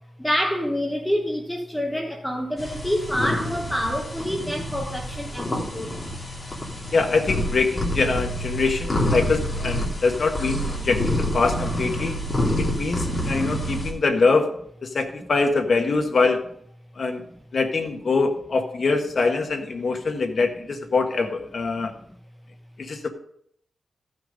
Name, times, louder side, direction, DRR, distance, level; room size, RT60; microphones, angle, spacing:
voice 1, 0.2-5.9, equal, 5° left, 2 dB, 1.1 m, -27 dB
sound 1, 2.6-13.9, equal, 25° left, 2.6 m, -27 dB
voice 2, 6.9-12.2 12.6-14.5 14.8-16.5 17.0-17.2 17.5-21.9 22.8-23.1, left 4 dB, 55° left, 4 dB, 1.4 m, -23 dB
14.5 x 6.0 x 5.1 m, 0.68 s
wide cardioid pair, 130°, 0 cm